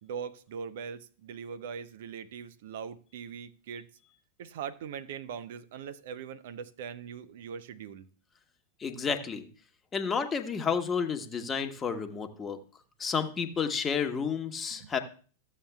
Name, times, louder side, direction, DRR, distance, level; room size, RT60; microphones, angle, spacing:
voice 1, 0.0-3.9 4.4-8.1 14.7-14.9, right 7 dB, 65° right, 0.6 m, -41 dB
voice 2, 8.8-9.5 9.9-12.6 13.0-15.0, left 6 dB, 25° left, 1.0 m, -31 dB
14.0 x 7.4 x 2.3 m
hypercardioid pair, 95°, 0 cm